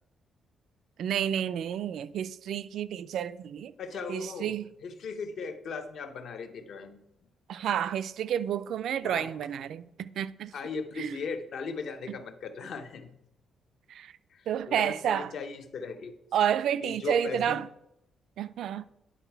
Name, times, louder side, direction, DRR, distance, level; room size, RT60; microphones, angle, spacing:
voice 1, 1.0-3.7 4.1-4.7 7.5-10.5 11.0-11.2 12.1-12.2 13.9-14.1 14.5-15.3 16.3-17.7 18.4-18.9, right 9 dB, 65° right, 0.3 m, -30 dB
voice 2, 3.8-4.5 4.8-7.0 9.0-9.3 10.5-13.1 14.3-16.1 16.8-17.6, left 4 dB, 55° left, 0.7 m, -38 dB
10.0 x 3.9 x 4.5 m
cardioid pair, 170°, 0 cm